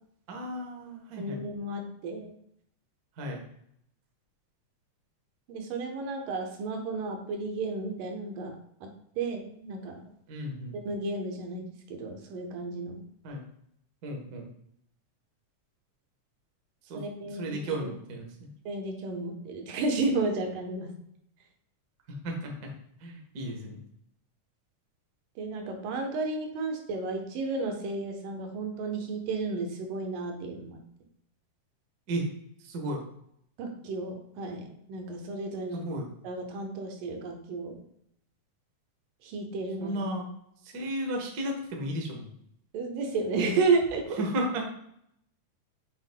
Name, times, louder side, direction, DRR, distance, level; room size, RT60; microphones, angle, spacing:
voice 1, 0.3-1.4 3.2-3.4 10.3-10.7 13.2-13.4 14.0-14.5 16.9-18.5 22.1-22.7 23.0-23.8 32.1-32.3 32.6-33.0 35.7-36.1 39.8-40.3 40.7-42.3 44.2-44.6, right 1 dB, 65° right, 1 dB, 0.9 m, -34 dB
voice 2, 1.2-2.3 5.5-8.5 8.8-8.9 9.2-10.0 10.8-13.0 16.9-17.9 18.7-20.9 25.4-30.8 33.6-35.8 36.2-37.8 39.2-39.9 42.7-44.2, right 3 dB, 90° right, 3 dB, 2.7 m, -32 dB
7.7 x 5.8 x 2.2 m, 0.71 s
omnidirectional pair, 3.7 m